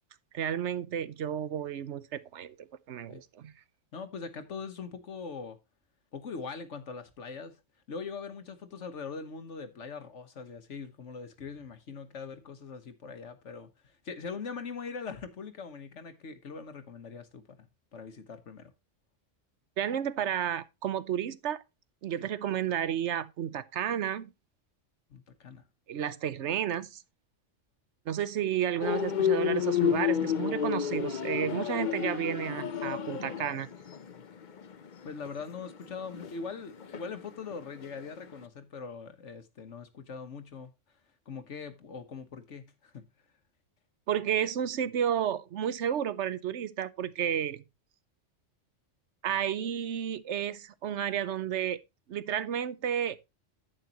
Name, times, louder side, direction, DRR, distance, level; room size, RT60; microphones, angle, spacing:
voice 1, 0.3-3.5 19.8-21.6 22.0-24.3 25.9-27.0 28.1-33.7 44.1-47.6 49.2-51.8 52.1-53.3, right 9 dB, 70° right, 1.1 m, -32 dB
voice 2, 3.9-5.6 6.1-7.6 7.9-17.7 17.9-18.7 25.1-25.6 29.9-30.0 35.0-40.7 41.3-43.1, left 5 dB, 70° left, 1.4 m, -42 dB
sound 1, 28.8-37.9 38.2-38.4, left 9 dB, 45° left, 0.8 m, -31 dB
11.0 x 8.7 x 2.9 m
omnidirectional pair, 1.3 m